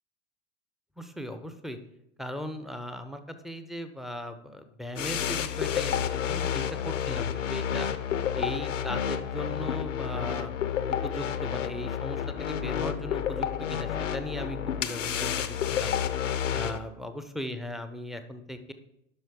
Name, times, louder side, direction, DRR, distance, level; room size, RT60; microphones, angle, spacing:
voice 1, 1.0-1.8 2.2-7.9 8.3-10.5 10.9-15.9 16.5-18.7, equal, ahead, 8 dB, 0.5 m, -38 dB
sound 1, 5.0-16.8, left 9 dB, 80° left, 0.6 m, -30 dB
11.5 x 5.6 x 3.6 m, 0.84 s
figure-of-eight pair, 85°, 37 cm